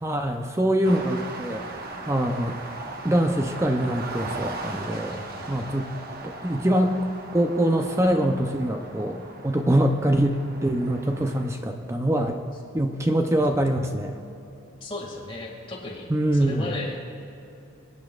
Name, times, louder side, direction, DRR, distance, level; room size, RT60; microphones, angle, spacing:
voice 1, 0.0-1.7 2.0-2.6 3.0-5.2 5.5-5.9 6.2-7.0 7.3-12.4 12.7-14.2 16.1-16.7, right 1 dB, 15° right, 5 dB, 0.5 m, -24 dB
sound 1, 0.8-11.5, right 2 dB, 45° right, 0.9 m, -38 dB
voice 2, 5.1-5.7 14.8-17.0, left 2 dB, 25° left, -3 dB, 2.0 m, -36 dB
25.0 x 8.6 x 2.4 m, 2.8 s
head